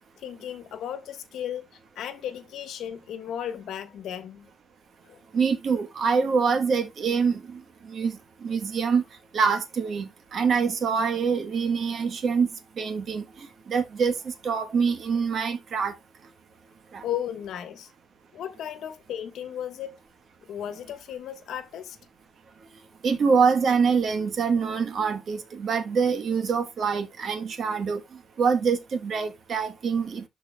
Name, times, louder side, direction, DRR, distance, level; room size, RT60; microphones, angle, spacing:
voice 1, 0.2-1.7 1.9-4.5 5.0-5.2 17.0-17.9 18.3-20.0 20.5-22.0, left 10 dB, 65° left, 1.2 m, -35 dB
voice 2, 5.3-7.6 7.9-8.1 8.4-9.0 9.3-12.5 12.8-13.2 13.7-15.9 16.9-17.0 23.0-28.0 28.4-30.2, right 5 dB, 40° right, 1.1 m, -25 dB
12.5 x 4.4 x 2.2 m
cardioid pair, 175°, 0 cm